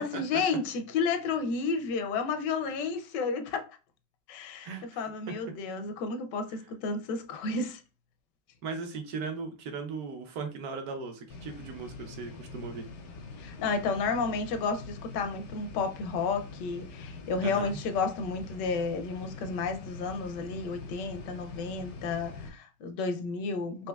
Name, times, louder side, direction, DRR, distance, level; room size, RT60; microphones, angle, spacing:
voice 1, 0.0-3.7 4.3-7.8 13.4-23.9, left 4 dB, 85° left, 1.2 m, -32 dB
voice 2, 4.6-5.0 6.5-6.6 8.6-12.9 17.4-17.8, right 4 dB, 65° right, 1.1 m, -38 dB
sound 1, 11.3-22.5, left 3 dB, 70° left, 0.7 m, -44 dB
4.3 x 2.6 x 2.3 m
omnidirectional pair, 1.8 m